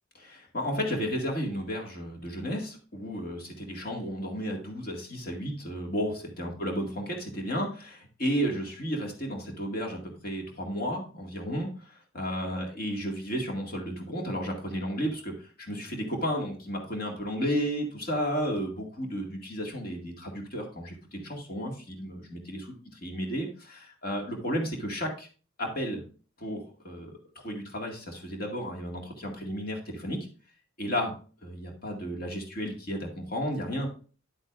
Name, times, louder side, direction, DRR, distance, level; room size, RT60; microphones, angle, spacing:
voice 1, 0.1-22.7 23.0-25.3 25.6-26.0 26.4-27.2 27.4-30.2 30.8-31.1 31.4-33.9, equal, 45° left, 1 dB, 2.0 m, -33 dB
9.9 x 8.0 x 2.5 m, 0.38 s
head